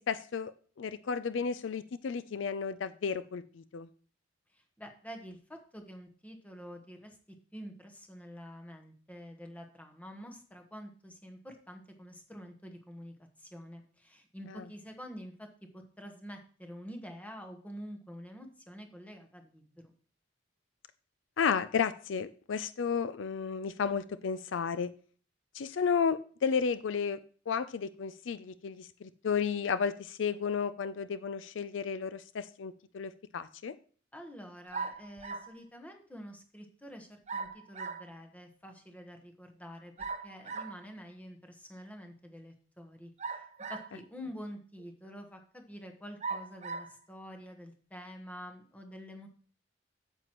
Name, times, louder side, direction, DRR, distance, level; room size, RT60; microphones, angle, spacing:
voice 1, 0.1-0.5 0.8-3.9 14.5-14.6 21.4-24.9 25.5-27.2 27.5-33.7, left 6 dB, 70° left, 14 dB, 0.4 m, -33 dB
voice 2, 4.5-7.2 7.5-15.5 15.7-19.9 34.1-49.3, equal, 10° left, 4 dB, 1.2 m, -47 dB
sound 1, 34.7-35.6 37.3-38.1 40.0-40.8 43.2-44.0 44.8-44.9 46.2-46.9, right 4 dB, 35° right, 0.8 m, -39 dB
9.0 x 7.8 x 3.0 m, 0.43 s
head